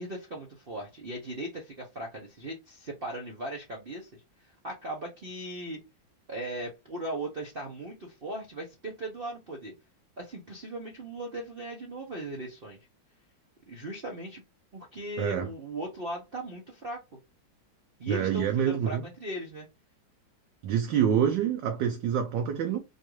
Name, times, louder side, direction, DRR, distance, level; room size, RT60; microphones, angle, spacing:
voice 1, 0.0-5.8 6.3-9.7 10.2-12.8 13.7-14.4 14.7-17.0 18.0-19.7, right 1 dB, 55° right, 0.6 m, -38 dB
voice 2, 15.2-15.5 18.1-19.0 20.6-22.8, right 8 dB, 70° right, 1.2 m, -26 dB
4.4 x 2.4 x 3.1 m
omnidirectional pair, 2.1 m